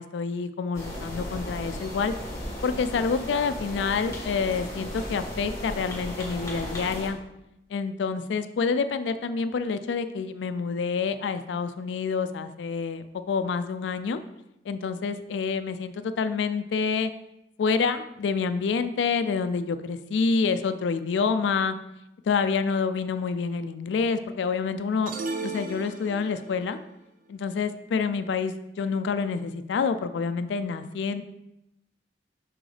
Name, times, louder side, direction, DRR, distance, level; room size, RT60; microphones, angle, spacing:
voice 1, 0.0-2.1 2.6-7.2 7.7-14.2 14.7-17.1 17.6-21.7 22.3-25.1 25.4-26.8 27.3-31.2, left 5 dB, 85° left, 11 dB, 0.3 m, -27 dB
sound 1, 0.7-7.1, left 1 dB, 20° left, 1.3 m, -36 dB
sound 2, 25.1-26.6, right 3 dB, 50° right, 0.5 m, -34 dB
6.2 x 4.7 x 3.3 m, 0.88 s
head